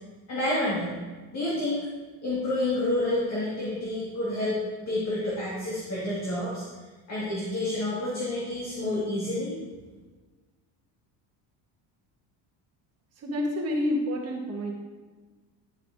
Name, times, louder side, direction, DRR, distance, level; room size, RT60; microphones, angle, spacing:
voice 1, 0.3-0.9 1.3-1.8 2.2-4.6 4.9-6.6 7.1-9.6, left 1 dB, 40° left, -7 dB, 1.8 m, -29 dB
voice 2, 13.2-14.7, left 1 dB, 35° right, 0 dB, 1.2 m, -28 dB
11.0 x 5.5 x 2.6 m, 1.4 s
cardioid pair, 165°, 42 cm